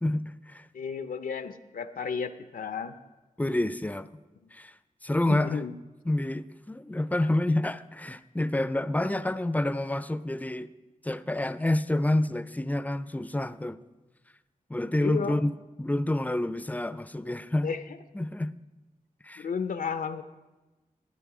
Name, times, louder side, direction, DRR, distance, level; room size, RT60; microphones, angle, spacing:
voice 1, 0.0-0.7 3.4-4.1 4.5-4.7 5.0-5.6 6.1-10.7 11.0-13.8 14.7-15.5 15.8-17.7 18.1-18.6 19.2-19.5, left 1 dB, 10° left, 0.4 m, -28 dB
voice 2, 0.7-2.9 5.3-5.8 15.0-15.4 17.6-17.8 19.4-20.2, left 6 dB, 85° left, 0.6 m, -32 dB
12.5 x 9.3 x 4.9 m
wide cardioid pair, 90°, 14 cm